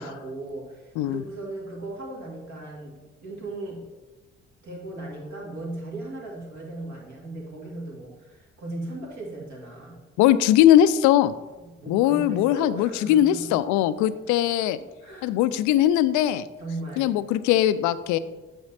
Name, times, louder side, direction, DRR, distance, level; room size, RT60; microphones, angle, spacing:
voice 1, 0.0-2.9 3.2-3.9 4.6-10.0 11.6-13.6 15.0-15.4 16.6-17.2, right 2 dB, 50° right, -2 dB, 2.1 m, -37 dB
voice 2, 10.2-11.3 11.9-14.8 15.2-16.4 17.0-18.2, left 12 dB, 55° left, 15 dB, 0.4 m, -20 dB
8.7 x 7.2 x 2.8 m, 1.2 s
figure-of-eight pair, 40°, 36 cm